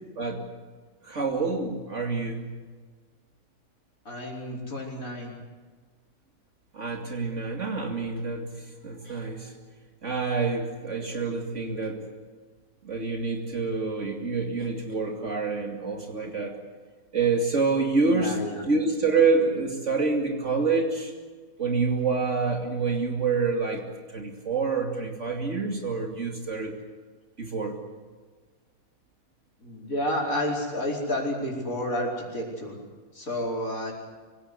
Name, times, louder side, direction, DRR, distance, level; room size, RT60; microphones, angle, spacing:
voice 1, 0.2-0.5 1.0-2.5 6.7-9.6 10.0-12.1 12.8-16.6 17.1-18.4 18.6-21.1 21.6-23.8 24.1-26.8 27.4-27.8, right 4 dB, 55° right, 3 dB, 2.9 m, -27 dB
voice 2, 4.1-5.3 11.0-11.2 18.1-18.7 29.6-32.8 33.1-33.9, left 1 dB, 70° left, -2 dB, 5.3 m, -30 dB
25.5 x 17.0 x 9.8 m, 1.4 s
omnidirectional pair, 1.5 m